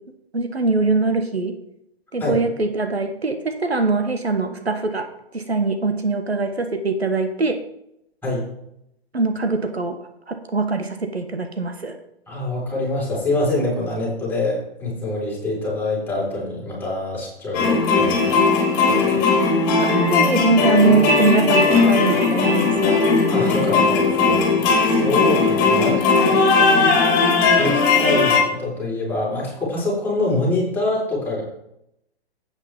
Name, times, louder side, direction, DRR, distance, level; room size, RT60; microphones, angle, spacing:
voice 1, 0.3-1.6 2.1-5.1 5.3-7.6 9.1-10.0 10.3-12.0 19.8-23.0, right 3 dB, 85° right, 7 dB, 1.3 m, -22 dB
voice 2, 12.3-18.4 18.8-19.2 23.3-24.5 24.9-26.9 27.5-31.4, left 2 dB, 5° left, -6 dB, 4.6 m, -25 dB
sound 1, 17.5-28.4, left 4 dB, 25° left, 3.1 m, -17 dB
11.5 x 8.9 x 3.7 m, 0.79 s
figure-of-eight pair, 115°, 31 cm